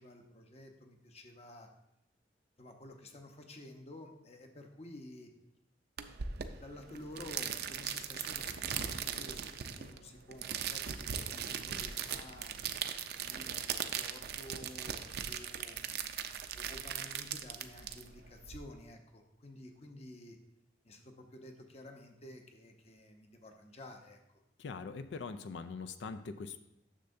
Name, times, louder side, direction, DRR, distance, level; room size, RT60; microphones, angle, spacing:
voice 1, 0.0-1.7 2.6-5.3 6.2-12.5 13.2-16.2 16.5-20.4 20.8-24.4, left 1 dB, 35° left, 4 dB, 0.8 m, -52 dB
sound 1, 6.0-18.6, right 8 dB, 60° right, 0.5 m, -39 dB
voice 2, 24.6-26.6, left 4 dB, 65° left, 9 dB, 0.4 m, -42 dB
10.0 x 6.7 x 2.6 m, 0.87 s
head